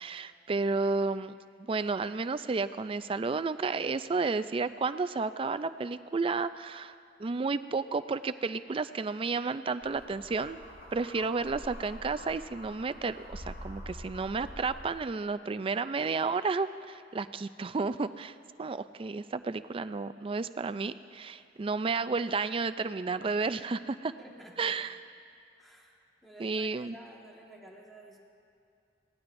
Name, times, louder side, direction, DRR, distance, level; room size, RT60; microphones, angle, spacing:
voice 1, 0.0-1.3 1.7-6.9 7.2-10.6 10.9-24.1 24.6-25.0 26.4-27.0, right 4 dB, 30° right, 12 dB, 0.4 m, -32 dB
sound 1, 9.8-15.0, equal, 55° left, 1.9 m, -46 dB
voice 2, 24.2-24.7 25.6-28.2, right 1 dB, ahead, -2 dB, 1.6 m, -52 dB
23.0 x 17.5 x 2.6 m, 2.5 s
head